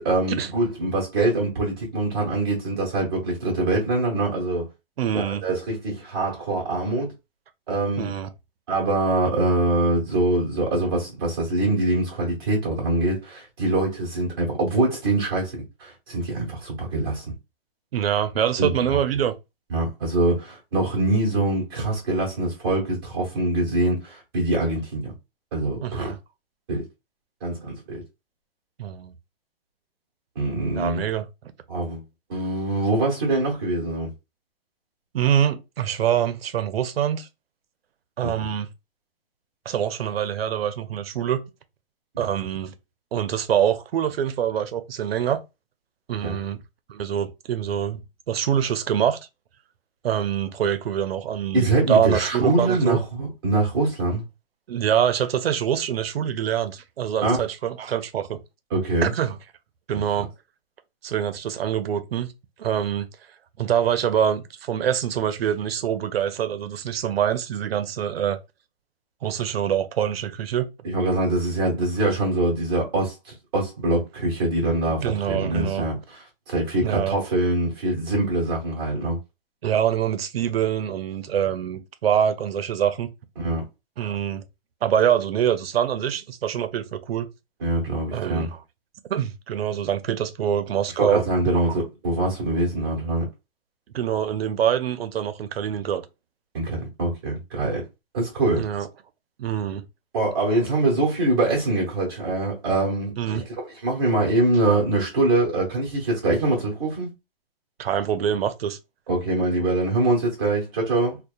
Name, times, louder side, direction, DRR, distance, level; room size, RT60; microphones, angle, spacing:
voice 1, 0.0-4.7 5.1-7.1 7.7-8.1 8.7-17.3 18.6-19.0 19.7-25.1 25.5-26.1 26.7-26.8 27.4-28.0 30.4-31.0 31.7-32.0 32.3-34.1 38.2-38.5 46.2-46.4 51.5-54.2 57.2-57.4 58.7-59.1 59.9-60.0 70.8-79.2 83.4-83.6 87.6-88.5 91.0-93.3 96.5-97.8 98.1-98.6 100.1-107.1 109.1-111.2, right 2 dB, 25° right, 0.8 m, -24 dB
voice 2, 5.0-5.4 8.0-8.3 17.9-19.3 25.8-26.2 28.8-29.1 30.7-31.3 35.1-37.3 38.2-38.7 39.7-41.4 42.2-42.7 43.1-45.4 46.1-46.6 46.9-48.0 48.3-49.2 50.0-53.0 54.7-58.4 59.0-59.4 59.9-60.3 61.0-62.3 62.6-63.1 63.6-68.4 69.2-70.7 75.0-75.9 76.8-77.2 79.6-83.1 84.0-84.4 84.8-87.3 88.1-88.6 89.1-91.2 91.6-91.7 93.9-96.0 98.6-98.9 99.4-99.8 103.2-103.4 107.8-108.8, right 9 dB, 85° right, 0.5 m, -25 dB
2.7 x 2.1 x 2.3 m
hypercardioid pair, 170°, 30 cm